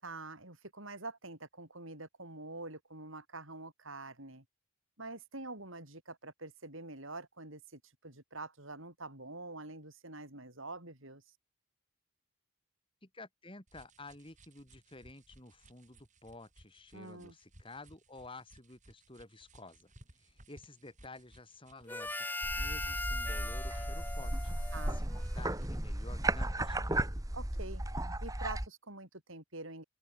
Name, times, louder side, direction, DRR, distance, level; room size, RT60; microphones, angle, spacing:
voice 1, 0.0-4.4 5.0-11.2 16.9-17.4 24.7-25.0 27.3-27.8 28.2-29.8, right 2 dB, 65° right, 7.9 m, -46 dB
voice 2, 13.0-19.9 20.2-22.1 22.6-24.5 24.9-27.0, left 2 dB, 25° left, 2.6 m, -52 dB
sound 1, 13.7-25.9, right 1 dB, 35° right, 7.1 m, -62 dB
Harmonica, 21.9-25.7, left 2 dB, 10° left, 2.1 m, -40 dB
sound 2, 22.4-28.7, right 1 dB, 15° right, 1.7 m, -35 dB
open air
head